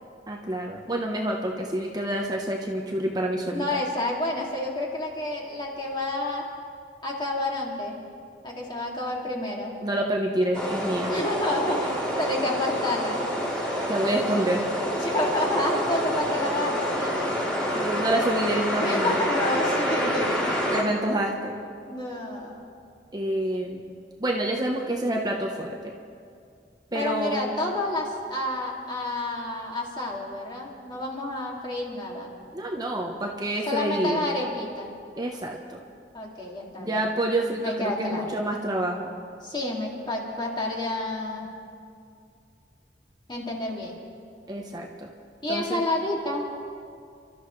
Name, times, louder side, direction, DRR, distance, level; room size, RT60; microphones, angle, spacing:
voice 1, 0.3-3.6 9.8-11.1 13.9-14.6 17.7-19.2 19.5-19.6 20.7-21.5 23.1-23.8 24.2-25.9 26.9-27.6 32.5-34.3 35.2-35.8 36.8-39.1 44.5-45.1 45.5-45.8, right 1 dB, 25° right, 0 dB, 1.0 m, -28 dB
voice 2, 3.5-6.4 7.0-8.0 8.4-9.7 11.1-13.2 15.0-17.1 18.8-20.3 21.9-22.6 26.9-32.3 33.7-34.9 36.1-37.0 37.6-38.2 39.4-41.5 43.3-44.0 45.4-46.4, left 1 dB, 25° left, -2 dB, 2.5 m, -29 dB
sound 1, 10.5-20.8, equal, 5° left, 3.3 m, -27 dB
29.5 x 13.0 x 3.3 m, 2.4 s
head